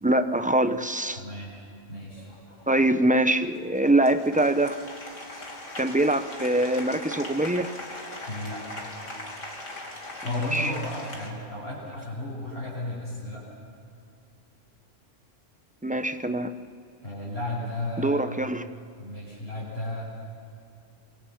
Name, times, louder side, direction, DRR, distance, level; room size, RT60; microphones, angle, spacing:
voice 1, 0.0-1.2 2.7-4.8 5.8-7.7 10.3-10.7 15.8-16.5 18.0-18.7, right 1 dB, 5° right, 9 dB, 0.8 m, -24 dB
voice 2, 1.1-1.5 1.9-2.3 8.3-8.6 10.2-13.4 17.0-18.2 19.0-20.3, left 1 dB, 55° left, -8 dB, 8.2 m, -34 dB
Applause, 2.2-11.3, left 1 dB, 85° left, 3.6 m, -40 dB
27.0 x 24.0 x 7.3 m, 2.5 s
omnidirectional pair, 1.3 m